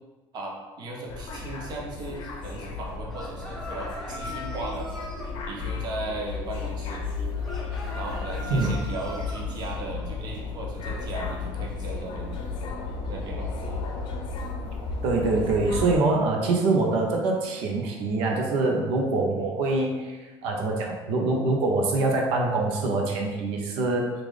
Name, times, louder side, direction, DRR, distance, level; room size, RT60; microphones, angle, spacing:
voice 1, 0.3-4.9 5.5-7.0 7.9-12.3 13.1-13.5 16.2-16.3 19.3-19.5, right 2 dB, 50° right, -1 dB, 0.8 m, -37 dB
sound 1, 1.1-16.0, left 4 dB, 60° left, 0.6 m, -33 dB
sound 2, 3.1-5.3 7.4-9.5, equal, 5° left, 0.5 m, -40 dB
voice 2, 15.0-24.1, right 3 dB, 85° right, 0 dB, 0.7 m, -24 dB
3.8 x 2.4 x 3.2 m, 1.2 s
cardioid pair, 140°, 9 cm